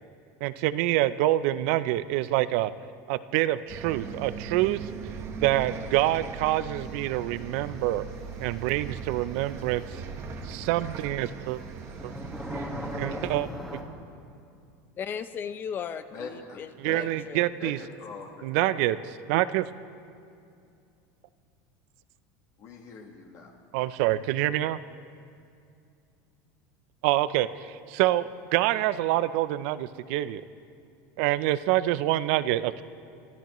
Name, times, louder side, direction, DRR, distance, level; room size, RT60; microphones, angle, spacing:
voice 1, 0.4-2.7 3.1-4.8 5.4-8.1 8.4-9.8 10.4-11.6 12.0-12.1 12.9-13.8 16.8-17.8 18.4-19.0 19.3-19.7 23.7-24.8 27.0-30.4 31.2-32.8, right 15 dB, 65° right, 15 dB, 0.5 m, -26 dB
Bus, 3.7-13.4, right 5 dB, 35° right, 1.0 m, -39 dB
sound 1, 9.1-9.2 11.3-13.8, equal, 5° left, 1.6 m, -37 dB
voice 2, 15.0-17.4, left 7 dB, 25° left, 12 dB, 0.6 m, -36 dB
voice 3, 16.1-17.1 17.6-19.1 22.6-23.5, left 4 dB, 40° left, 1 dB, 1.5 m, -43 dB
25.5 x 13.5 x 3.1 m, 2.5 s
supercardioid pair, 150°, 8 cm